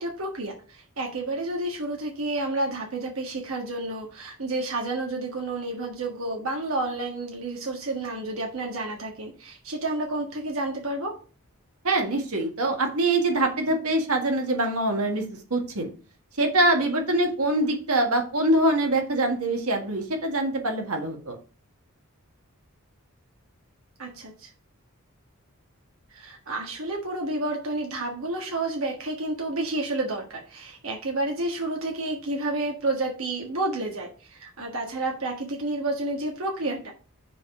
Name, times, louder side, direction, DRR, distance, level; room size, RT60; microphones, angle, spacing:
voice 1, 0.0-11.2 24.0-24.5 26.1-36.9, right 2 dB, 70° right, 1 dB, 1.5 m, -30 dB
voice 2, 11.8-15.3 15.5-15.9 16.4-21.4, right 2 dB, 85° right, 3 dB, 1.8 m, -24 dB
6.2 x 4.9 x 5.8 m, 0.37 s
head